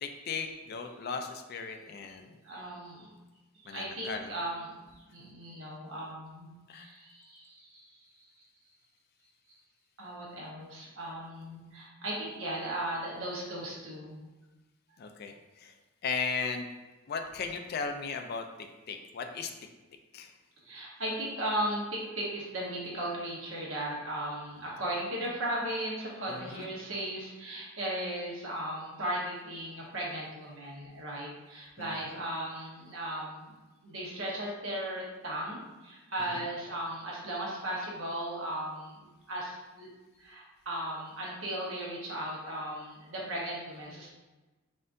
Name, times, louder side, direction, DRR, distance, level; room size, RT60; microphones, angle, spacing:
voice 1, 0.0-2.3 3.6-4.3 6.7-6.9 15.0-15.8 16.0-16.7 17.1-19.5 20.1-20.3 26.3-26.7 31.8-32.2 36.2-36.4, left 5 dB, 45° left, 5 dB, 0.3 m, -37 dB
voice 2, 2.4-3.1 3.5-8.3 10.0-14.2 20.6-33.5 33.8-39.9 40.2-44.1, right 1 dB, 65° right, -4 dB, 1.1 m, -37 dB
4.2 x 3.7 x 2.6 m, 1.2 s
head